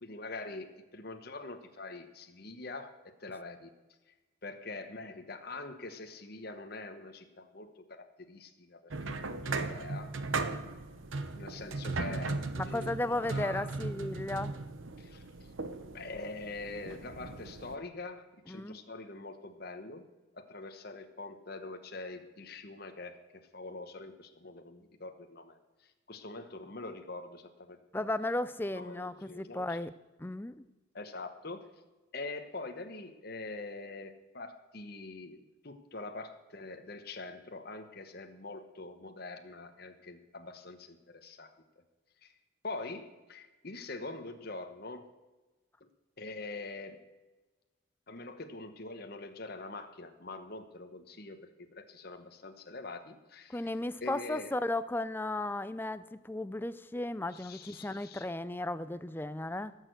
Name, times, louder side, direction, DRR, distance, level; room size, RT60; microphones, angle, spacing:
voice 1, 0.0-3.7 4.1-4.2 4.4-10.1 11.3-13.7 15.0-15.2 15.8-20.0 20.3-23.2 23.5-28.1 28.7-29.8 30.9-31.6 32.1-35.4 35.6-41.5 42.2-42.3 42.6-45.1 46.2-47.0 48.1-53.7 54.0-54.6 57.3-58.3, left 3 dB, 50° left, 6 dB, 1.1 m, -44 dB
sound 1, 8.9-17.8, right 3 dB, 80° right, 0.9 m, -37 dB
voice 2, 12.6-14.6 18.5-18.8 27.9-29.9 30.2-30.7 53.5-59.8, left 2 dB, 10° left, 14 dB, 0.4 m, -35 dB
17.0 x 6.7 x 7.9 m, 1.2 s
head